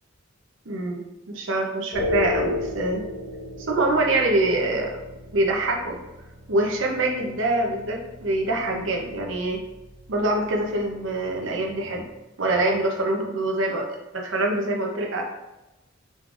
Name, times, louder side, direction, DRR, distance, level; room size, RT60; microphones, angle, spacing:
voice 1, 0.7-3.0 3.7-5.0 5.3-6.0 6.5-9.6 10.1-12.0 12.4-13.9 14.1-15.2, right 2 dB, 70° right, 1 dB, 0.8 m, -24 dB
sound 1, 1.9-12.1, left 2 dB, 55° left, 1.1 m, -35 dB
5.1 x 3.8 x 2.5 m, 1.0 s
head